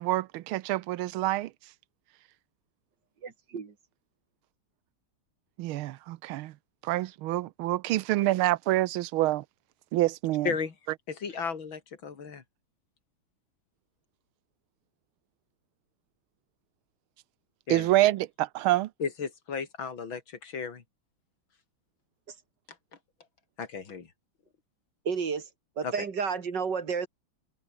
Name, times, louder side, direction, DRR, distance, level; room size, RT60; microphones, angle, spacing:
voice 1, 0.0-1.5 5.6-6.5 6.8-9.4 9.9-10.5 17.7-18.9, right 16 dB, 90° right, 1.5 m, -27 dB
voice 2, 3.2-3.7 25.0-25.5 25.8-27.1, right 5 dB, 55° right, 2.7 m, -31 dB
voice 3, 10.4-10.7 11.1-12.4 17.7-17.9 19.0-20.8 23.6-24.1 25.8-25.9, left 5 dB, 70° left, 3.3 m, -34 dB
omnidirectional pair, 2.3 m